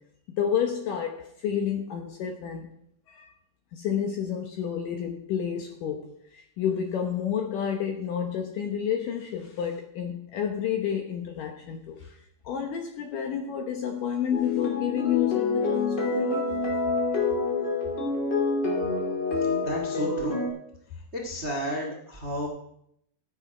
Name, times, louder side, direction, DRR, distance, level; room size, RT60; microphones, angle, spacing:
voice 1, 0.3-2.7 3.1-3.3 3.7-12.2 12.4-16.5, left 8 dB, 70° left, 4 dB, 2.0 m, -30 dB
sound 1, 14.3-20.5, left 3 dB, 30° left, 2.8 m, -27 dB
voice 2, 19.4-20.4 21.1-22.5, equal, 60° right, 0 dB, 0.6 m, -32 dB
14.5 x 8.4 x 5.0 m, 0.73 s
omnidirectional pair, 4.9 m